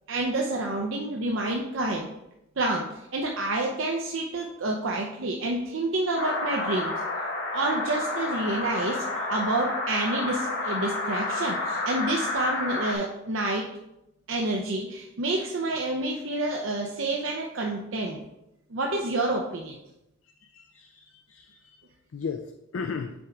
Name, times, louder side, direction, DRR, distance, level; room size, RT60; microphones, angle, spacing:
voice 1, 0.1-2.1 2.6-6.9 7.5-13.7 14.3-18.2 18.7-19.8, right 2 dB, 65° right, 0 dB, 0.7 m, -28 dB
sound 1, 6.2-13.0, left 2 dB, 50° left, 1.2 m, -30 dB
voice 2, 20.5-21.8 22.1-22.5 22.7-23.1, left 5 dB, 65° left, 6 dB, 0.4 m, -35 dB
6.0 x 4.7 x 3.8 m, 0.87 s
head